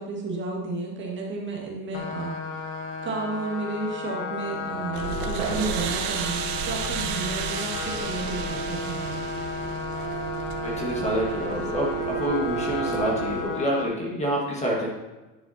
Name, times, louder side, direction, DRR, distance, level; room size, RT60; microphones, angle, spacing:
voice 1, 0.0-9.3, right 3 dB, 25° right, -1 dB, 1.7 m, -32 dB
sound 1, 1.9-13.8, left 4 dB, 70° left, 1.5 m, -34 dB
sound 2, 4.9-13.4, right 7 dB, 70° right, 1.2 m, -31 dB
voice 2, 10.6-14.9, equal, 15° left, -2 dB, 1.5 m, -27 dB
10.0 x 5.6 x 4.1 m, 1.1 s
supercardioid pair, 155°, 46 cm